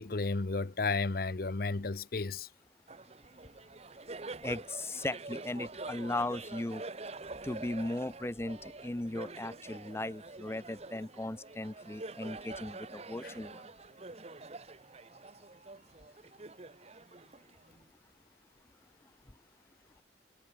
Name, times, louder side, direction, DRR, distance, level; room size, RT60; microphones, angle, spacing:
voice 1, 0.0-2.5 13.2-13.3, left 3 dB, 55° left, 0.8 m, -33 dB
Laughter, 2.9-17.9, right 3 dB, 35° right, 1.2 m, -46 dB
voice 2, 4.4-6.8 7.4-13.6, left 2 dB, 15° left, 0.5 m, -37 dB
head